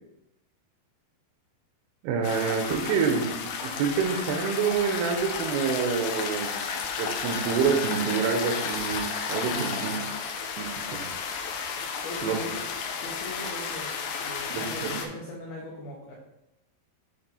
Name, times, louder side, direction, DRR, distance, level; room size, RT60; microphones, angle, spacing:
voice 1, 2.0-6.6 7.0-9.9 10.6-11.1 12.2-12.4 14.5-14.9, right 6 dB, 90° right, 5 dB, 2.6 m, -27 dB
sound 1, 2.2-15.1, left 5 dB, 90° left, 2.6 m, -33 dB
voice 2, 9.5-10.1 12.0-12.7 13.0-13.9 14.2-16.1, left 1 dB, 70° left, -3 dB, 1.9 m, -39 dB
8.6 x 3.0 x 4.1 m, 0.88 s
omnidirectional pair, 4.5 m